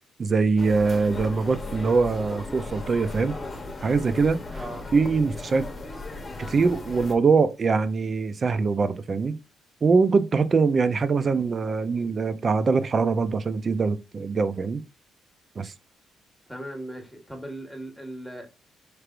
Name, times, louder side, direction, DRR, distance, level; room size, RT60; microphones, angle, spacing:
voice 1, 0.2-3.4 3.8-4.6 4.9-5.7 6.4-9.4 9.8-14.8 15.6-15.7, right 4 dB, 40° right, 0.5 m, -23 dB
sound 1, 0.6-7.1, left 2 dB, 25° left, 1.0 m, -36 dB
voice 2, 4.5-4.8 16.5-18.5, right 1 dB, 5° left, 1.4 m, -38 dB
4.5 x 3.3 x 2.5 m
cardioid pair, 90°, 0 cm